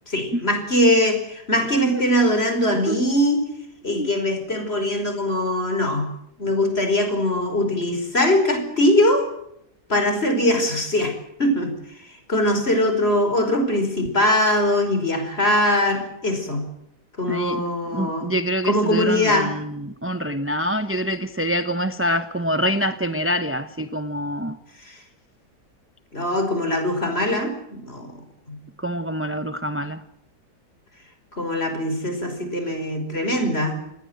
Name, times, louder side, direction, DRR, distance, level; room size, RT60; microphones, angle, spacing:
voice 1, 0.1-3.4 3.8-6.1 6.4-9.3 9.9-11.7 12.1-16.7 17.2-18.3 18.6-19.6 24.8-25.0 26.1-28.1 28.5-28.6 31.3-33.8, left 1 dB, 35° left, 7 dB, 5.4 m, -21 dB
voice 2, 17.3-24.6 28.8-30.0, equal, 10° right, 9 dB, 0.8 m, -26 dB
27.5 x 20.0 x 7.9 m, 0.77 s
omnidirectional pair, 1.8 m